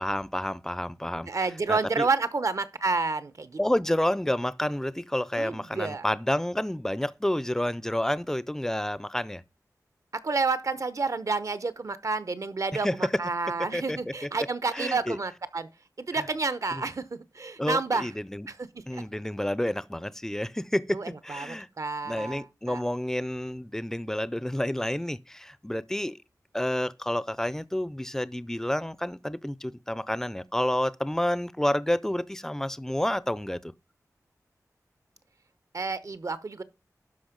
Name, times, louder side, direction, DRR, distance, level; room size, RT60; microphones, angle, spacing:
voice 1, 0.0-1.3 1.7-2.1 3.6-9.4 12.8-12.9 13.7-14.3 14.7-15.2 16.1-16.2 16.7-16.8 17.6-18.5 18.9-21.7 22.0-26.2 26.5-33.7, left 1 dB, 5° left, 0.5 m, -29 dB
voice 2, 1.3-3.6 5.4-6.0 10.1-15.7 16.0-18.1 18.5-19.0 20.9-22.8 35.7-36.6, right 4 dB, 55° right, 0.9 m, -30 dB
12.0 x 5.4 x 5.2 m
wide cardioid pair, 95°, 6 cm